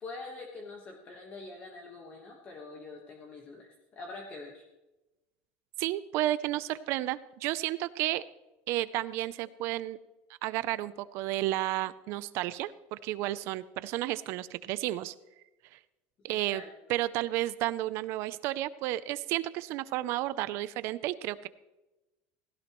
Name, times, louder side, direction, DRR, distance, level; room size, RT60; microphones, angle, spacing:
voice 1, 0.0-4.6 16.3-16.7, left 3 dB, 25° left, 1 dB, 1.4 m, -45 dB
voice 2, 5.8-8.2 8.7-10.0 10.4-15.1 15.7-15.8 16.2-16.6 16.9-21.5, right 15 dB, 50° right, 16 dB, 0.5 m, -32 dB
16.5 x 16.0 x 3.1 m, 1.0 s
cardioid pair, 175°, 6 cm